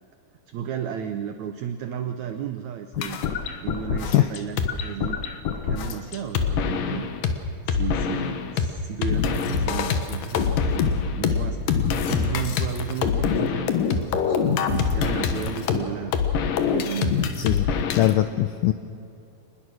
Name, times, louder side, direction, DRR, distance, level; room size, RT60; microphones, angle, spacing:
voice 1, 0.5-3.2 3.6-5.2 5.6-7.1 7.7-16.2 16.6-17.4, right 8 dB, 85° right, 8 dB, 1.6 m, -33 dB
sound 1, 2.9-7.3 7.7-8.7 9.0-18.1, left 6 dB, 65° left, 2.7 m, -24 dB
voice 2, 18.0-18.7, left 15 dB, 85° left, 9 dB, 1.8 m, -20 dB
24.5 x 20.5 x 6.3 m, 2.6 s
omnidirectional pair, 4.4 m